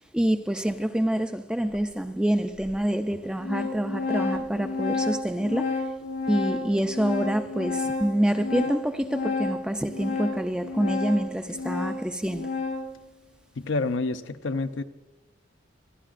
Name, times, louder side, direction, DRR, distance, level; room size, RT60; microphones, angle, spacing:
voice 1, 0.1-5.8 6.3-12.5, right 1 dB, 5° right, 0.4 m, -27 dB
Organ, 1.7-1.8 2.7-2.8 3.1-13.0, left 3 dB, 85° left, 1.2 m, -31 dB
voice 2, 13.6-14.8, left 3 dB, 70° left, 0.6 m, -28 dB
25.0 x 11.5 x 2.5 m
head